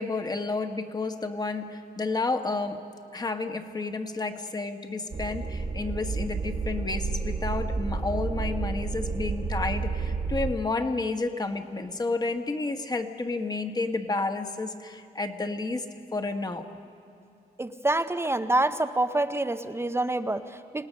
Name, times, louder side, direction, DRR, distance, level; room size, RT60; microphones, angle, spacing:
voice 1, 0.0-2.8 3.1-15.8 16.1-16.7, left 3 dB, 25° left, 6 dB, 1.3 m, -31 dB
sound 1, 5.1-10.5, right 4 dB, 35° right, 1.3 m, -30 dB
voice 2, 17.6-20.9, right 2 dB, 15° right, 10 dB, 0.7 m, -27 dB
27.0 x 18.5 x 6.4 m, 2.5 s
cardioid pair, 95°, 17 cm